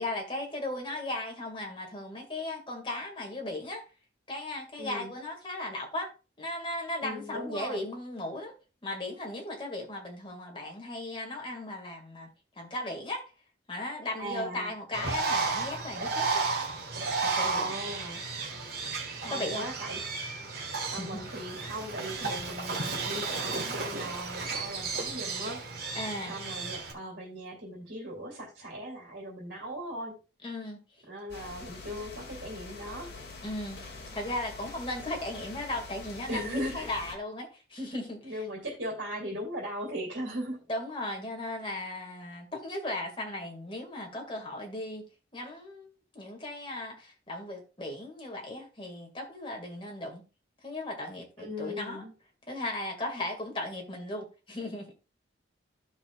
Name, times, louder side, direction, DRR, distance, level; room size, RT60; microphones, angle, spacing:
voice 1, 0.0-3.8 4.3-6.1 6.4-8.5 8.8-12.3 12.6-13.2 13.7-16.5 17.2-17.7 19.3-19.6 20.9-21.2 26.0-26.3 30.4-30.8 33.4-33.8 34.1-38.4 40.7-45.1 45.3-45.9 46.1-50.2 50.6-52.0 52.5-54.9, left 1 dB, 25° left, 2.0 m, -36 dB
voice 2, 4.8-5.1 7.0-7.9 14.2-14.7 17.5-18.2 19.2-20.0 20.9-25.6 26.3-30.1 31.1-33.3 36.3-36.9 38.2-40.6 51.4-52.1, equal, 75° right, 2.7 m, -38 dB
Bird, 14.9-26.9, right 4 dB, 50° right, 1.7 m, -33 dB
sound 1, 31.3-37.1, left 3 dB, 60° left, 1.7 m, -45 dB
14.5 x 5.5 x 2.4 m
head